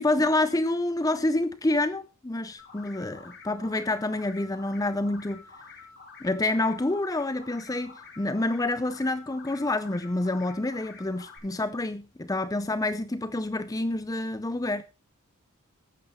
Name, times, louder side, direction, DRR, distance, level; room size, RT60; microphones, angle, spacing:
voice 1, 0.0-5.4 6.2-14.8, left 2 dB, 15° left, 0.5 m, -28 dB
sound 1, 2.6-11.4, left 4 dB, 50° left, 5.6 m, -49 dB
13.5 x 9.4 x 4.2 m
head